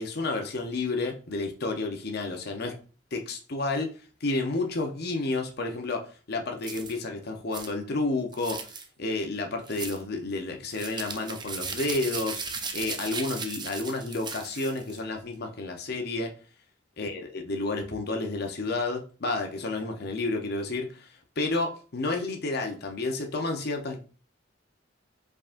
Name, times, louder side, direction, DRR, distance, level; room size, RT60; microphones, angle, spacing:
voice 1, 0.0-2.8 3.1-3.9 4.2-8.7 9.0-12.4 12.7-16.3 17.0-24.0, left 2 dB, 55° left, 0.7 m, -31 dB
sound 1, 6.6-7.0 7.5-7.7 8.3-8.9 9.7-10.0 10.7-15.0, right 5 dB, 25° right, 0.5 m, -37 dB
4.7 x 3.7 x 2.5 m
head